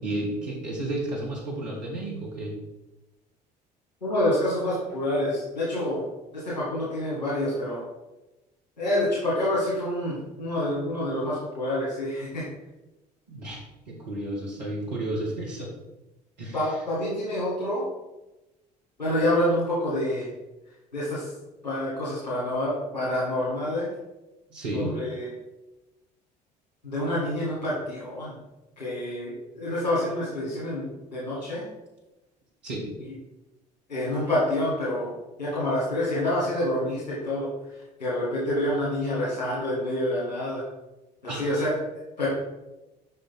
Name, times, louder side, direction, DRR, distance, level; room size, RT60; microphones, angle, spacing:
voice 1, 0.0-2.6 13.3-15.7 16.4-16.7 24.5-24.9 32.6-32.9 41.3-41.5, right 1 dB, 80° right, -2 dB, 1.7 m, -32 dB
voice 2, 4.0-6.0 6.3-7.8 8.8-12.4 16.5-17.8 19.0-20.3 20.9-21.2 21.6-23.9 24.7-25.3 26.8-28.3 28.8-31.6 33.9-35.1 35.4-37.5 38.0-40.6 41.2-41.8 42.2-42.3, left 1 dB, 80° left, -9 dB, 1.8 m, -27 dB
6.5 x 5.8 x 4.1 m, 1.0 s
figure-of-eight pair, 55°, 21 cm